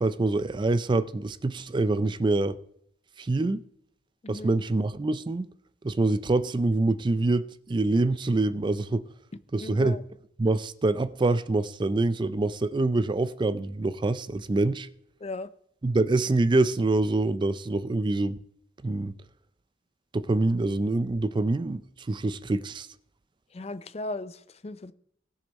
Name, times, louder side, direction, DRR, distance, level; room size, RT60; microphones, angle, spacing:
voice 1, 0.0-2.6 3.2-3.6 4.3-5.5 5.8-9.0 9.5-10.0 10.4-14.9 15.8-18.4 18.8-19.1 20.1-21.8 22.1-22.9, right 2 dB, 25° right, 0.4 m, -25 dB
voice 2, 9.6-10.0 15.2-15.5 23.5-24.9, left 2 dB, 35° left, 0.5 m, -37 dB
18.5 x 6.8 x 4.1 m
head